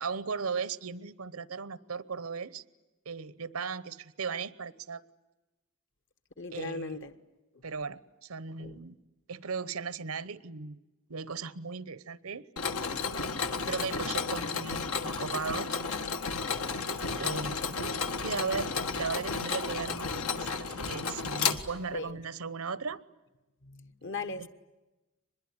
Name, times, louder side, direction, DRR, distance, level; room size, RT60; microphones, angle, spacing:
voice 1, 0.0-2.6 3.1-5.0 6.5-7.0 7.6-9.0 9.3-10.8 11.1-12.5 13.7-15.8 17.2-23.0 24.4-24.5, right 5 dB, 85° right, 0.9 m, -37 dB
voice 2, 6.4-7.1 8.6-8.8 21.9-22.2 23.6-24.5, left 3 dB, 60° left, 1.5 m, -38 dB
Mechanisms, 12.6-22.1, left 5 dB, 85° left, 1.6 m, -33 dB
24.5 x 21.5 x 9.6 m
head